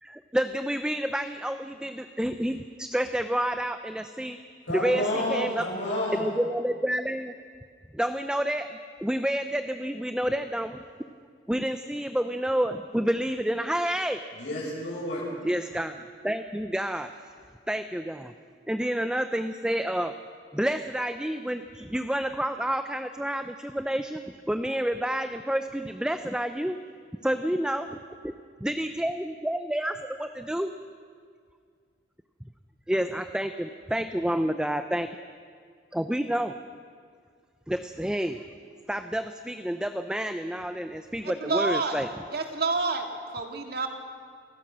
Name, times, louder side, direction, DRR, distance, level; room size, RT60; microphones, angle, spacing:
voice 1, 0.0-4.4 4.7-5.7 6.2-7.3 7.9-10.8 11.5-14.2 15.4-17.3 17.7-18.3 18.7-20.1 20.5-26.8 27.2-27.9 28.2-28.3 28.6-30.7 32.9-35.2 35.9-36.5 37.7-38.4 38.9-42.1, equal, 5° right, 8 dB, 0.5 m, -29 dB
voice 2, 4.7-6.3 14.3-15.2, left 1 dB, 80° left, -6 dB, 7.6 m, -30 dB
voice 3, 41.2-42.0 42.3-43.1 43.3-43.9, right 3 dB, 60° right, 4 dB, 2.3 m, -28 dB
28.5 x 16.0 x 6.3 m, 2.1 s
head